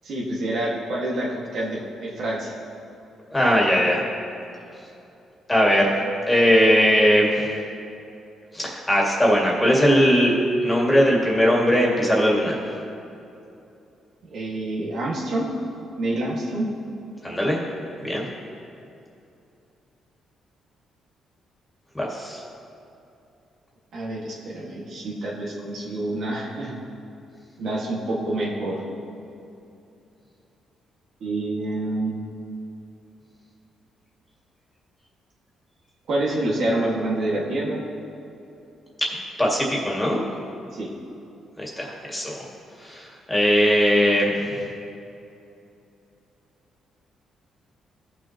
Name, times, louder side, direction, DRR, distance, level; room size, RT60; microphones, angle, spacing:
voice 1, 0.0-2.5 14.3-15.5 16.0-16.7 23.9-26.7 27.6-28.8 31.2-32.1 36.1-37.8 40.7-40.9, right 1 dB, 65° right, -4 dB, 1.7 m, -27 dB
voice 2, 3.3-4.0 5.5-5.9 6.3-7.3 8.6-10.3 10.6-12.5 17.2-17.6 18.0-18.2 21.9-22.4 39.4-40.2 41.6-42.4 43.3-44.3, equal, 10° left, -3 dB, 2.1 m, -19 dB
16.0 x 6.2 x 2.9 m, 2.7 s
cardioid pair, 90°, 0 cm